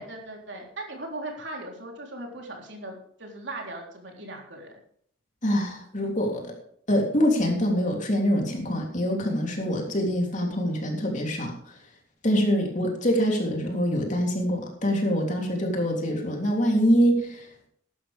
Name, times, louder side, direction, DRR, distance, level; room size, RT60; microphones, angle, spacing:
voice 1, 0.0-4.8, right 2 dB, 60° right, 1 dB, 3.7 m, -39 dB
voice 2, 5.4-6.5 6.9-11.8 12.2-17.7, equal, 40° left, 1 dB, 3.3 m, -25 dB
15.5 x 11.5 x 3.5 m, 0.66 s
head